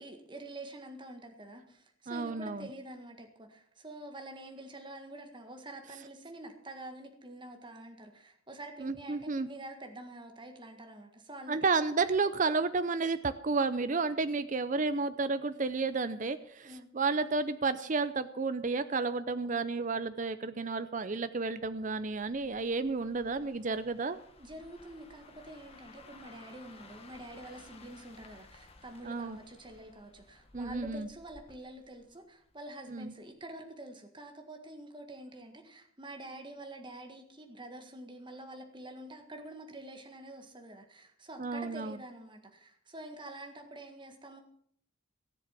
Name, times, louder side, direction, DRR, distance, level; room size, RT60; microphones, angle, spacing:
voice 1, 0.0-11.6 16.6-16.9 24.4-44.4, right 1 dB, 25° right, 4 dB, 1.8 m, -47 dB
voice 2, 2.1-2.7 8.8-9.5 11.5-24.2 29.0-29.4 30.5-31.1 32.9-33.1 41.4-42.0, right 4 dB, 40° right, 12 dB, 0.6 m, -31 dB
sound 1, 21.6-32.7 33.0-33.3, left 3 dB, 30° left, 1.6 m, -57 dB
17.5 x 7.5 x 7.5 m, 0.63 s
head